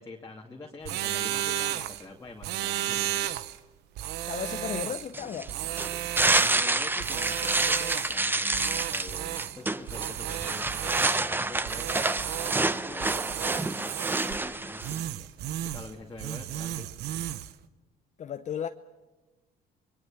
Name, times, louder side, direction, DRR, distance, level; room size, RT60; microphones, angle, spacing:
voice 1, 0.0-3.3 6.3-15.3 15.6-16.9, left 3 dB, 20° left, 2.3 m, -45 dB
sound 1, 0.8-2.0 2.4-3.6 4.0-5.1 5.5-6.7 7.0-8.2 8.5-9.6 9.9-11.3 11.7-12.8 13.0-14.4 14.8-15.9 16.2-17.5, right 13 dB, 85° right, 0.9 m, -33 dB
voice 2, 4.3-5.6 18.2-18.7, left 8 dB, 45° left, 0.8 m, -34 dB
sound 2, 5.1-15.0, right 2 dB, 10° right, 0.8 m, -28 dB
28.5 x 22.0 x 7.3 m
cardioid pair, 110°, 17 cm